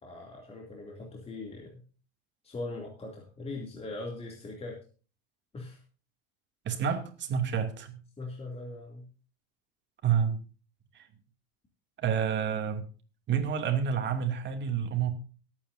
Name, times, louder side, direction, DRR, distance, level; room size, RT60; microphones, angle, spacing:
voice 1, 0.0-1.8 2.4-4.8 5.5-5.8 8.2-9.1, left 2 dB, 20° left, -1 dB, 2.7 m, -40 dB
voice 2, 6.6-8.0 10.0-10.4 10.9-11.0 12.0-12.8 13.3-15.1, right 7 dB, 40° right, 4 dB, 2.6 m, -29 dB
24.0 x 8.9 x 2.7 m, 0.37 s
supercardioid pair, 120°, 30 cm